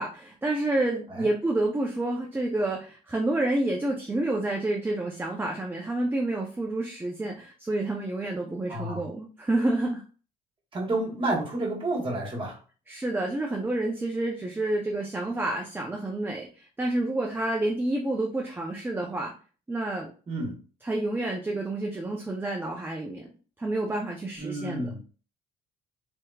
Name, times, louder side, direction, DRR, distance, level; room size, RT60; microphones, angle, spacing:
voice 1, 0.0-10.0 12.9-19.3 19.7-20.1 20.8-23.3 23.6-24.9, right 2 dB, 10° right, 0 dB, 0.5 m, -29 dB
voice 2, 8.7-9.1 10.7-12.6 20.3-20.6 24.4-25.0, right 2 dB, 30° right, -2 dB, 1.3 m, -30 dB
3.4 x 2.8 x 2.3 m, 0.38 s
cardioid pair, 110°, 17 cm